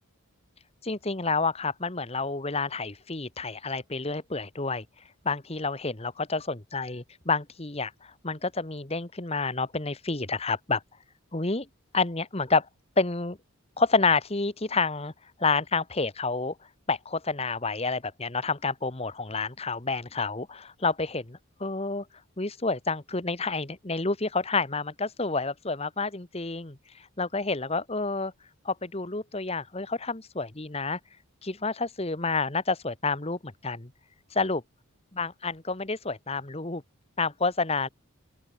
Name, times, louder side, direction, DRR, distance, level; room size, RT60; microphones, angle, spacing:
voice 1, 0.8-4.8 5.2-10.8 11.3-11.7 11.9-12.7 13.0-13.4 13.8-15.1 15.4-16.5 16.9-22.0 22.4-26.8 27.2-28.3 28.6-31.0 31.4-33.9 34.3-34.6 35.1-36.8 37.2-37.9, left 4 dB, 25° left, 1.2 m, -29 dB
open air
head